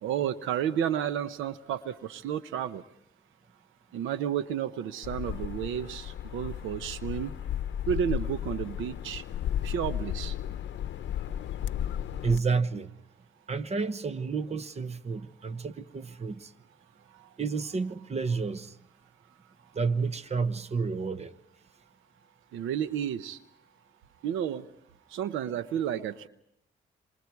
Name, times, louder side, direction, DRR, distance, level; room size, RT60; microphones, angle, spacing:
voice 1, 0.0-2.8 3.9-7.3 7.9-9.2 9.6-10.3 22.5-23.4 24.2-24.6 25.1-26.3, right 9 dB, 85° right, 0.9 m, -31 dB
sound 1, 5.0-12.4, left 10 dB, 65° left, 0.8 m, -34 dB
voice 2, 12.2-12.9 13.5-16.5 17.4-18.8 19.7-21.3, right 4 dB, 30° right, 1.1 m, -30 dB
27.5 x 26.0 x 4.7 m
cardioid pair, 90°, 20 cm